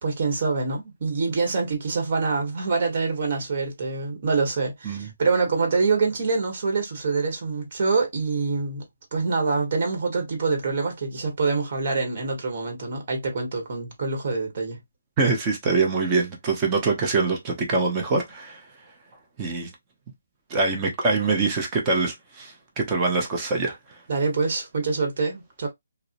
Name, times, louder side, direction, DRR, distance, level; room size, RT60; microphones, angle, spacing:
voice 1, 0.0-8.8 9.1-14.8 24.1-25.7, right 4 dB, 45° right, 1.1 m, -25 dB
voice 2, 15.2-18.6 19.4-19.7 20.5-23.8, right 3 dB, 20° right, 0.7 m, -24 dB
2.6 x 2.0 x 2.5 m
hypercardioid pair, 160°, 0 cm